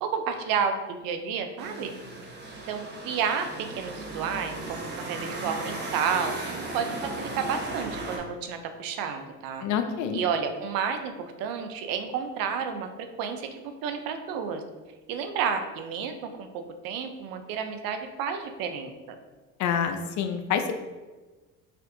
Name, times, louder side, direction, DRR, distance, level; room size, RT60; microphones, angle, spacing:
voice 1, 0.0-1.9 2.7-6.4 6.7-9.7 10.1-14.6 15.1-19.2, right 6 dB, 70° right, 7 dB, 0.6 m, -31 dB
sound 1, 1.6-8.2, right 2 dB, 30° right, 0.8 m, -36 dB
voice 2, 9.6-10.2 19.6-20.7, left 8 dB, 55° left, 7 dB, 0.5 m, -27 dB
4.3 x 2.6 x 2.6 m, 1.2 s
supercardioid pair, 85°, 36 cm